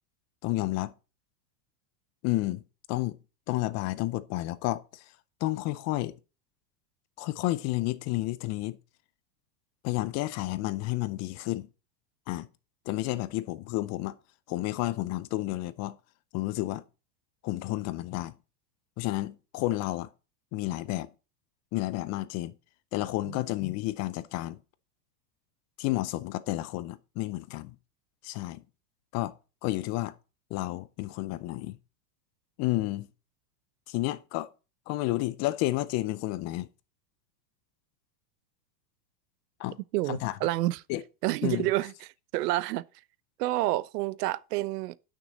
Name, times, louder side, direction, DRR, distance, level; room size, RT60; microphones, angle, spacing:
voice 1, 0.4-0.9 2.2-2.6 2.9-3.2 3.5-5.0 5.4-6.1 7.2-8.8 9.8-11.7 12.3-12.5 12.9-14.2 14.5-16.0 16.3-16.8 17.4-18.3 19.0-20.1 20.5-21.1 21.7-22.5 22.9-24.6 25.8-27.8 28.2-28.6 29.1-29.3 29.6-30.1 30.5-31.8 32.6-33.1 33.9-34.5 34.9-36.7 39.6-39.8 40.1-40.4 40.9-41.0 41.4-41.7, left 17 dB, 35° left, 0.5 m, -31 dB
voice 2, 39.9-40.8 41.2-41.9 42.3-42.8 43.4-45.0, right 17 dB, 75° right, 0.7 m, -28 dB
9.1 x 6.2 x 4.0 m
supercardioid pair, 130°, 49 cm